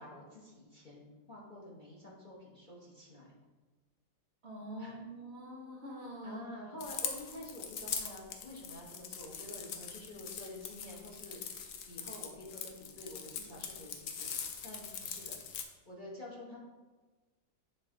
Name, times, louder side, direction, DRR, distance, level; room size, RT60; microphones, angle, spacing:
voice 1, 0.0-3.3 4.8-5.0 6.2-16.6, left 1 dB, 35° left, -4 dB, 0.8 m, -49 dB
voice 2, 4.4-6.4, right 1 dB, 65° right, -1 dB, 0.6 m, -45 dB
sound 1, 6.8-15.6, left 7 dB, 70° left, 1.1 m, -42 dB
7.8 x 3.9 x 3.7 m, 1.3 s
omnidirectional pair, 2.1 m